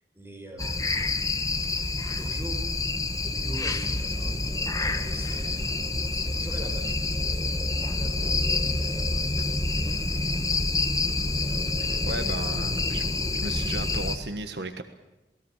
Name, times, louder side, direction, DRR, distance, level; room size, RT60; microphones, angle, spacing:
voice 1, 0.1-1.1 1.6-2.7 3.1-5.7 6.1-9.5 9.8-10.6 11.4-12.3, right 1 dB, 15° right, 3 dB, 5.8 m, -44 dB
sound 1, 0.6-14.2, left 2 dB, 20° left, 1.6 m, -27 dB
voice 2, 12.1-14.8, right 2 dB, 70° right, 8 dB, 1.5 m, -35 dB
27.5 x 20.5 x 7.4 m, 1.0 s
head